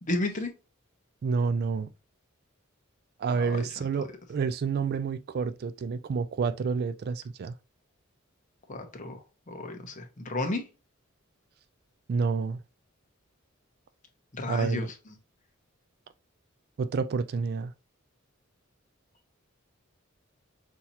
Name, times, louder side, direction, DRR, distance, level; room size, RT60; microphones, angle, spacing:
voice 1, 0.0-0.5 3.4-3.6 8.7-9.2 9.5-10.6 14.3-14.9, left 2 dB, 40° left, 0.9 m, -32 dB
voice 2, 1.2-1.9 3.2-7.5 12.1-12.6 14.5-14.9 16.8-17.7, right 5 dB, 50° right, 0.3 m, -29 dB
5.7 x 2.8 x 2.8 m
head